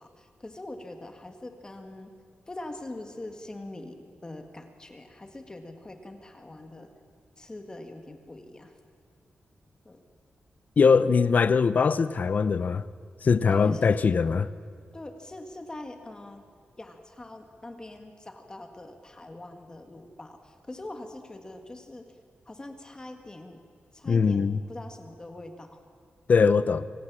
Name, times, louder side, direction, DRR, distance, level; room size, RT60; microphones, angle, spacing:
voice 1, 0.0-2.1 2.5-6.9 7.4-8.7 9.8-10.0 13.5-13.9 14.9-16.4 16.8-22.0 22.4-23.6 23.9-25.8, left 2 dB, 20° left, 1.7 m, -43 dB
voice 2, 10.8-12.8 13.2-14.5 24.1-24.6 26.3-26.9, left 5 dB, 45° left, 0.6 m, -21 dB
25.0 x 16.5 x 7.4 m
wide cardioid pair, 140°, 4 cm